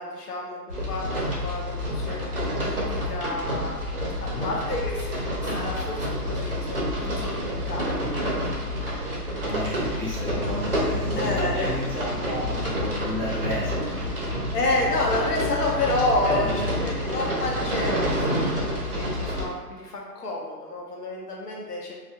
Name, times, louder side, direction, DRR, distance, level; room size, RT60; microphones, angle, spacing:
voice 1, 0.0-3.8 4.2-8.5 9.6-10.0 11.1-11.7 14.5-22.0, left 2 dB, 75° left, -2 dB, 0.8 m, -30 dB
sound 1, 0.7-19.5, equal, 40° right, 0.4 m, -28 dB
voice 2, 9.4-14.1 16.2-16.8, equal, 20° left, -13 dB, 0.7 m, -32 dB
Fire, 10.0-17.6, equal, 50° left, 0.9 m, -39 dB
2.4 x 2.0 x 2.6 m, 1.3 s
hypercardioid pair, 170°, 47 cm